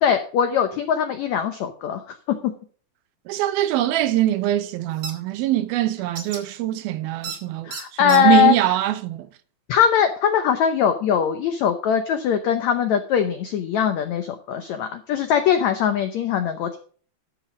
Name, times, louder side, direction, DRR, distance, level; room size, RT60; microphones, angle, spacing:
voice 1, 0.0-2.5 7.6-8.5 9.7-16.8, left 8 dB, 90° left, 1.6 m, -21 dB
voice 2, 3.3-7.7 8.0-9.3, right 14 dB, 80° right, 2.5 m, -22 dB
sound 1, 5.0-5.1 6.1-6.4 7.2-7.4 7.7-8.2, right 4 dB, 40° right, 1.7 m, -32 dB
12.5 x 6.5 x 5.0 m
omnidirectional pair, 4.4 m